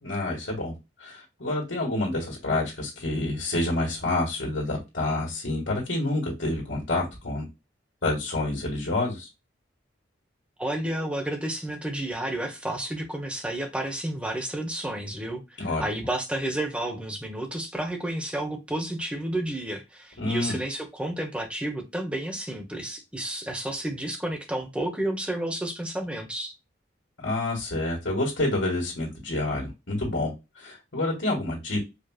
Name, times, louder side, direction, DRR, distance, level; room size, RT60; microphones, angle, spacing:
voice 1, 0.0-7.5 8.0-9.3 15.6-15.8 20.2-20.6 27.2-31.8, left 2 dB, 70° left, 1.8 m, -28 dB
voice 2, 10.6-26.5, right 1 dB, 5° right, 0.9 m, -31 dB
5.0 x 3.1 x 2.4 m
head